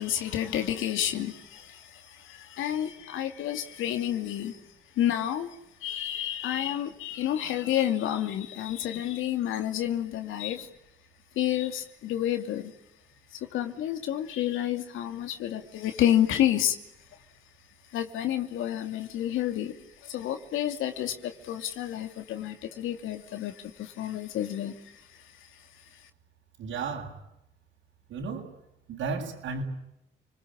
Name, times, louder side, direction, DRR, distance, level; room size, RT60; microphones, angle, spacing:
voice 1, 0.0-4.6 5.0-10.7 11.4-12.7 13.3-16.8 17.9-25.5, left 11 dB, 85° left, 6 dB, 2.7 m, -30 dB
voice 2, 26.6-27.2 28.1-28.5 28.9-29.6, right 4 dB, 80° right, 0 dB, 7.9 m, -33 dB
30.0 x 21.0 x 8.8 m, 0.83 s
cardioid pair, 90°, 20 cm